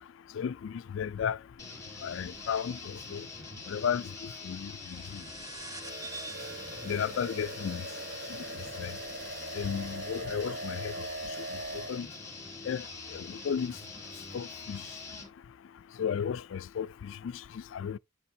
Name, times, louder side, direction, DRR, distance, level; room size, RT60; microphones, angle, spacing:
voice 1, 0.3-1.4 2.0-3.3 3.7-5.2 6.8-7.8 8.8-9.0 9.5-11.1 11.9-12.1 12.6-13.8 14.3-14.9 16.0-18.0, left 7 dB, 70° left, 0.3 m, -34 dB
sound 1, 1.6-15.3, left 3 dB, 15° left, 2.2 m, -45 dB
sound 2, 4.8-9.7, right 3 dB, 20° right, 0.6 m, -48 dB
sound 3, 5.8-12.0, right 2 dB, 45° right, 1.2 m, -41 dB
8.6 x 7.0 x 2.7 m
head